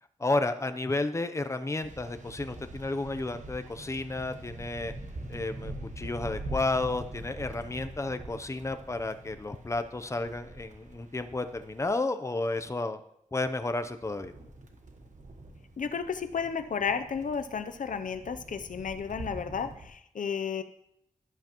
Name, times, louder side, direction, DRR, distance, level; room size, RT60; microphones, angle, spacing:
voice 1, 0.2-4.9 5.3-13.0 13.3-14.3, left 2 dB, 20° left, 8 dB, 0.6 m, -32 dB
sound 1, 1.8-12.0 13.7-19.9, right 1 dB, 65° right, 1.3 m, -44 dB
voice 2, 15.8-20.6, left 6 dB, 75° left, 10 dB, 0.6 m, -33 dB
11.5 x 11.0 x 3.0 m, 0.75 s
wide cardioid pair, 95°, 14 cm